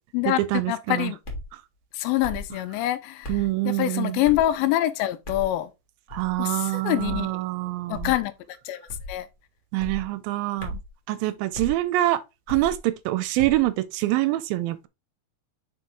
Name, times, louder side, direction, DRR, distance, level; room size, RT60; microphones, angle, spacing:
voice 1, 0.7-1.2 1.9-5.7 6.4-7.4 7.9-9.3, left 14 dB, 80° left, 2.3 m, -26 dB
sound 1, 1.2-1.5 2.2-2.5 3.2-3.5 4.2-4.5 5.2-5.5 6.1-6.4 7.0-7.3 7.9-8.2 8.9-9.2 9.8-10.0 10.6-10.9 11.5-11.8 12.5-12.8 13.4-13.6, left 1 dB, 35° left, 1.2 m, -35 dB
voice 2, 3.3-4.1 6.1-6.9 7.5-7.9 9.7-10.7 11.1-12.2 12.5-14.9, right 16 dB, 80° right, 2.3 m, -25 dB
5.9 x 4.6 x 3.6 m
omnidirectional pair, 4.3 m